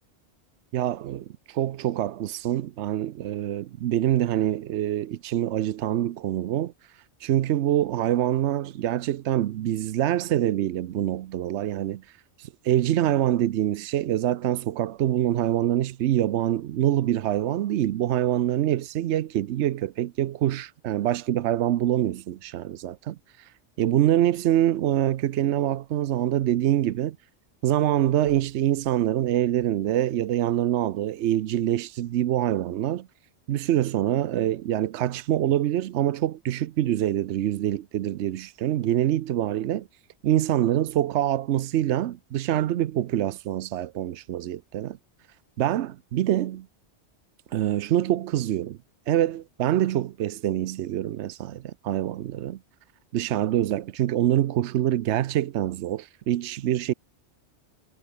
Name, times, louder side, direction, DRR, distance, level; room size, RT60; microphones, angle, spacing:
voice 1, 0.7-6.7 7.2-12.0 12.4-23.5 23.8-27.2 27.6-33.1 33.5-39.9 40.2-45.0 45.6-46.7 47.5-48.8 49.1-52.6 53.1-56.9, right 12 dB, 85° right, 0.9 m, -25 dB
omnidirectional pair, 1.2 m